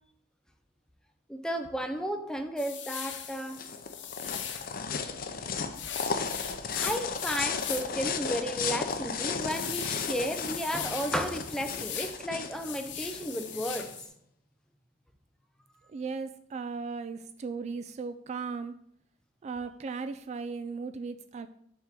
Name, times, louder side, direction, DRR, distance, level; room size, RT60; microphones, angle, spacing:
voice 1, 1.3-3.6 6.7-13.9, equal, 5° left, 6 dB, 0.6 m, -33 dB
sound 1, 2.6-4.7 5.7-8.0 8.4-8.5 9.0-12.2 12.5-14.1, left 8 dB, 80° left, 0.9 m, -39 dB
sound 2, 3.1-13.9, left 5 dB, 50° left, 0.6 m, -35 dB
voice 2, 15.9-18.7 19.4-21.5, right 4 dB, 40° right, 11 dB, 0.3 m, -37 dB
7.6 x 3.6 x 5.8 m, 0.69 s
head